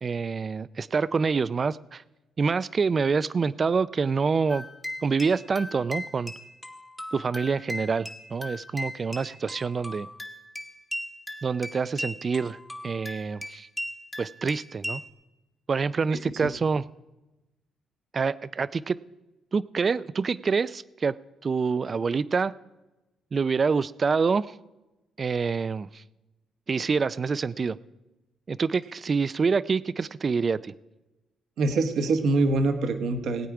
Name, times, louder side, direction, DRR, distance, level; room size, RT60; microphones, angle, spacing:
voice 1, 0.0-2.0 2.4-4.7 5.0-6.3 7.1-10.1 11.4-12.6 12.8-13.7 14.2-15.0 15.7-16.8 18.1-19.0 19.5-21.2 21.4-22.5 23.3-24.5 25.2-26.0 26.7-27.8 28.5-30.7, right 5 dB, 40° right, 18 dB, 0.4 m, -26 dB
sound 1, 4.5-15.1, left 1 dB, 5° left, 1.1 m, -38 dB
voice 2, 31.6-33.5, right 3 dB, 70° right, 7 dB, 1.1 m, -24 dB
19.5 x 8.4 x 4.8 m, 1.0 s
cardioid pair, 90°, 0 cm